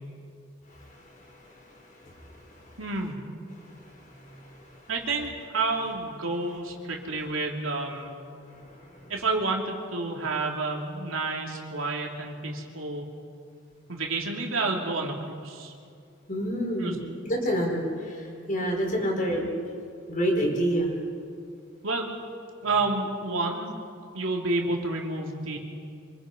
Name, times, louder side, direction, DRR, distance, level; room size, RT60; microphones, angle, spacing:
voice 1, 2.8-3.2 4.9-8.2 9.1-13.0 13.9-15.7 16.8-17.0 18.8-19.1 21.8-22.1 22.6-23.7 24.1-25.6, right 3 dB, 90° right, 0 dB, 3.3 m, -30 dB
voice 2, 8.5-9.1 16.3-17.0 17.2-18.2 18.5-19.4 20.1-20.9, equal, 40° left, 0 dB, 5.0 m, -28 dB
26.5 x 25.0 x 5.4 m, 2.3 s
head